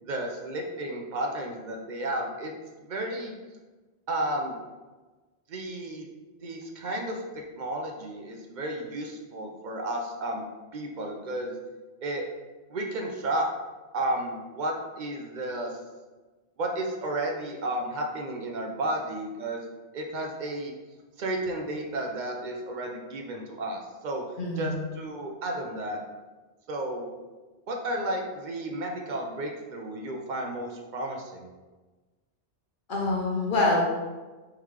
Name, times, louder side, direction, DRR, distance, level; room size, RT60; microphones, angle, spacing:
voice 1, 0.0-2.5 2.8-3.3 4.1-4.6 5.5-6.1 6.4-10.4 10.7-11.5 12.0-12.2 12.7-13.5 13.9-15.8 16.6-19.7 19.9-20.7 21.2-24.2 24.6-26.0 26.7-27.1 27.7-31.5, right 1 dB, 55° right, 2 dB, 0.6 m, -32 dB
voice 2, 24.4-24.8 32.9-33.8, left 2 dB, 55° left, -3 dB, 0.8 m, -25 dB
3.6 x 3.2 x 3.1 m, 1.2 s
omnidirectional pair, 1.1 m